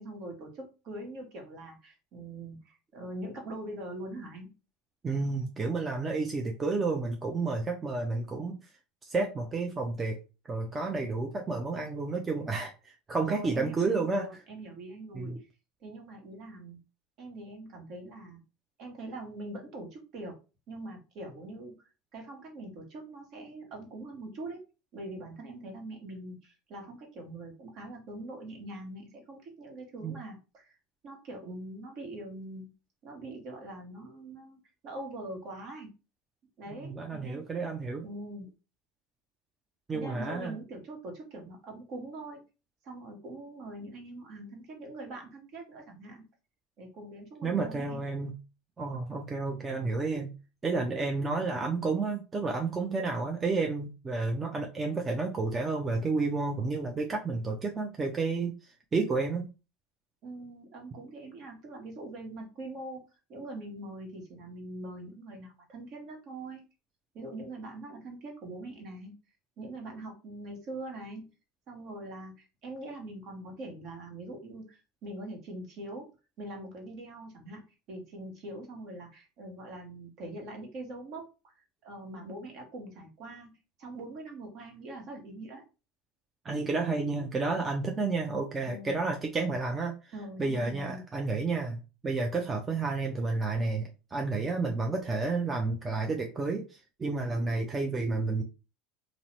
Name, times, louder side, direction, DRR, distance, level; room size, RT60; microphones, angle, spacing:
voice 1, 0.0-4.5 13.3-15.3 15.8-16.8 17.2-18.4 18.8-20.4 20.7-21.7 22.1-24.6 24.9-30.7 31.0-32.7 33.0-35.9 36.6-37.5 38.0-38.5 39.9-42.4 42.8-46.2 46.8-48.0 60.2-63.0 63.3-66.6 67.1-69.1 69.6-71.3 71.7-76.1 76.4-77.6 77.9-81.5 81.8-83.5 83.8-85.6 88.7-89.0 90.1-91.0, right 1 dB, 55° right, 2 dB, 1.0 m, -43 dB
voice 2, 5.0-8.7 9.0-10.2 10.5-14.3 15.1-15.4 30.0-30.1 36.8-38.1 39.9-40.6 47.4-48.3 48.8-50.3 50.6-59.5 86.4-90.1 90.4-98.4, right 3 dB, 25° right, 2 dB, 0.5 m, -31 dB
2.6 x 2.0 x 3.2 m, 0.31 s
hypercardioid pair, 90°, 0 cm